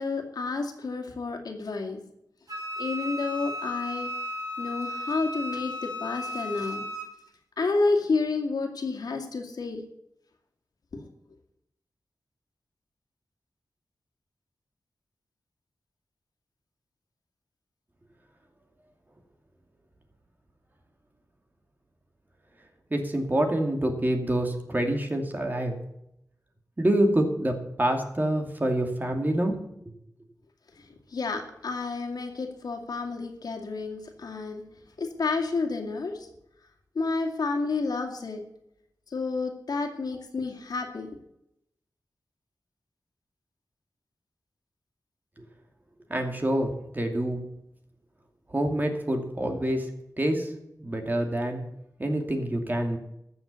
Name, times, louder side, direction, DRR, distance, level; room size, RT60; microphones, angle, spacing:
voice 1, 0.0-2.0 2.8-4.1 4.6-6.9 7.6-9.8 30.8-30.9 31.1-34.6 35.0-36.3 36.9-38.4 39.1-41.1, left 3 dB, 75° left, 2 dB, 2.4 m, -30 dB
Wind instrument woodwind instrument, 2.5-7.1, left 1 dB, 60° right, 5.6 m, -35 dB
voice 2, 22.9-25.8 26.8-29.6 29.9-30.0 45.4-45.5 46.1-47.4 48.5-49.9 50.2-50.5 50.8-51.6 52.0-53.0, right 1 dB, 25° right, 3 dB, 2.5 m, -26 dB
13.5 x 7.1 x 8.3 m, 0.79 s
wide cardioid pair, 70°, 7 cm